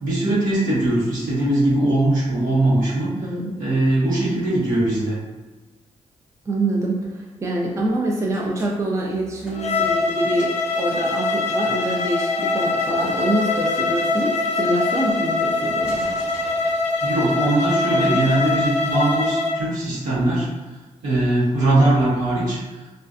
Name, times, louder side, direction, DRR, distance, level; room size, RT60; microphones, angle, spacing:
voice 1, 0.0-3.1 3.6-5.2 17.0-20.5 21.0-22.6, right 1 dB, 85° right, -8 dB, 0.9 m, -20 dB
voice 2, 3.2-3.6 6.5-16.0, right 1 dB, 25° right, -3 dB, 0.4 m, -25 dB
sound 1, 8.3-10.1 10.4-10.7 11.7-14.9 15.8-17.2, left 1 dB, 5° right, 0.8 m, -40 dB
Bowed string instrument, 9.5-19.6, left 3 dB, 55° left, 0.4 m, -23 dB
2.5 x 2.3 x 2.3 m, 1.2 s
cardioid pair, 75°, 13 cm